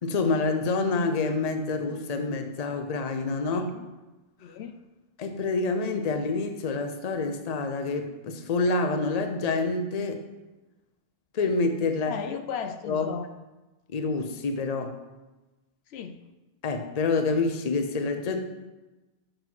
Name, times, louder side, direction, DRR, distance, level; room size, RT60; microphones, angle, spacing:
voice 1, 0.0-3.7 5.2-10.2 11.3-12.1 12.9-13.1 13.9-15.0 16.6-18.4, left 3 dB, 45° left, 6 dB, 0.7 m, -27 dB
voice 2, 3.5-3.9 4.4-4.8 12.1-13.3 15.9-16.2, left 7 dB, 80° left, 8 dB, 0.8 m, -36 dB
7.1 x 3.8 x 6.0 m, 1.1 s
omnidirectional pair, 1.1 m